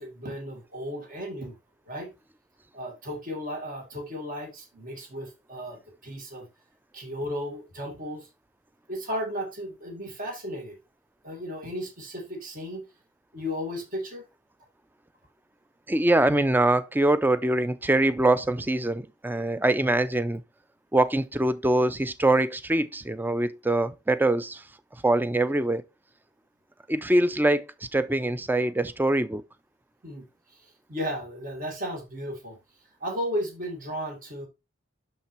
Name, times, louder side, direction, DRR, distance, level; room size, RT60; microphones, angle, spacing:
voice 1, 0.0-1.5 1.9-2.1 2.7-6.5 6.9-8.3 8.9-10.8 11.2-12.8 13.3-14.2 30.0-30.3 30.9-32.6 33.0-34.5, equal, 45° right, 1.7 m, -34 dB
voice 2, 15.9-20.4 20.9-24.6 25.0-25.8 26.9-27.7 27.9-29.4, right 1 dB, 10° right, 0.4 m, -23 dB
6.6 x 5.7 x 3.0 m
head